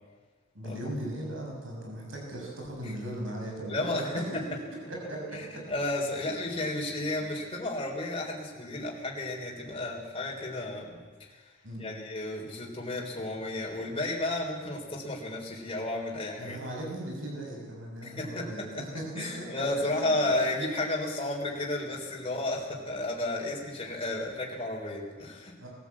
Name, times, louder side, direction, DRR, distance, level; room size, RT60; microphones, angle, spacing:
voice 1, 0.5-5.7 11.6-11.9 16.4-20.4 25.6-25.7, right 1 dB, 70° right, -1 dB, 7.0 m, -38 dB
voice 2, 3.7-4.4 5.3-11.4 11.8-16.6 18.0-25.5, left 2 dB, 30° left, -2 dB, 3.7 m, -33 dB
21.5 x 14.0 x 8.6 m, 1.4 s
head